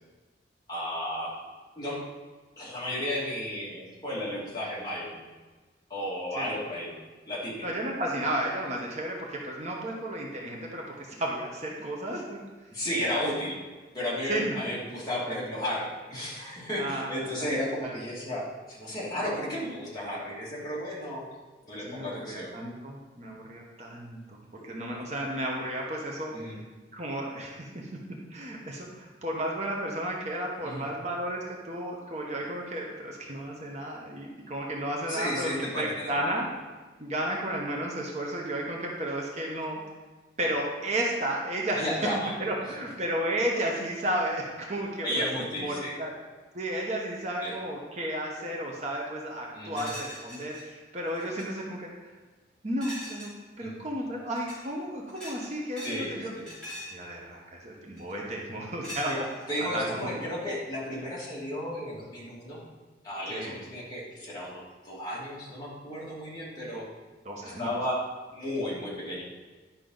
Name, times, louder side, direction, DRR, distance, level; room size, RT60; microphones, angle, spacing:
voice 1, 0.7-1.4 1.8-2.0 2.6-5.2 5.9-7.0 7.3-7.7 12.7-13.6 13.9-21.2 21.6-22.5 24.5-24.6 26.3-26.6 30.6-30.9 35.1-36.3 41.8-42.3 45.0-46.0 47.4-47.5 49.5-49.9 53.6-53.8 55.8-56.5 59.1-59.2 59.5-62.6 63.0-66.9 67.4-68.0 68.3-69.2, left 1 dB, 20° left, -7 dB, 2.4 m, -33 dB
voice 2, 7.6-12.4 14.3-14.6 16.8-17.5 17.8-17.9 21.7-26.6 26.9-27.9 28.3-36.5 37.0-39.8 40.4-41.9 42.4-46.1 46.5-51.9 52.6-53.3 53.6-56.3 56.9-59.1 59.7-60.1 63.3-63.5 67.2-67.7, right 1 dB, 40° right, -2 dB, 1.0 m, -33 dB
sound 1, 49.7-50.6 51.1-51.5 52.8-53.4 54.3-54.7 55.1-56.1 56.3-57.0 58.0-58.3 58.8-59.5, equal, 5° left, 3.0 m, -42 dB
10.5 x 5.8 x 3.9 m, 1.3 s
head